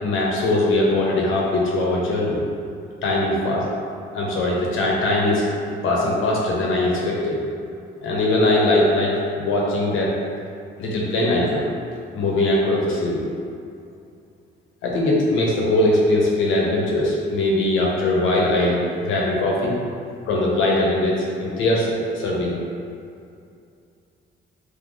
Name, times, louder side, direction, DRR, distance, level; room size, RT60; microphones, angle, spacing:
voice 1, 0.0-2.4 3.0-3.7 4.1-5.4 5.8-7.4 8.0-10.1 10.8-11.7 12.1-13.2 14.8-19.7 20.3-22.6, left 1 dB, 85° left, -3 dB, 1.0 m, -21 dB
3.9 x 2.8 x 3.8 m, 2.5 s
cardioid pair, 90°, 20 cm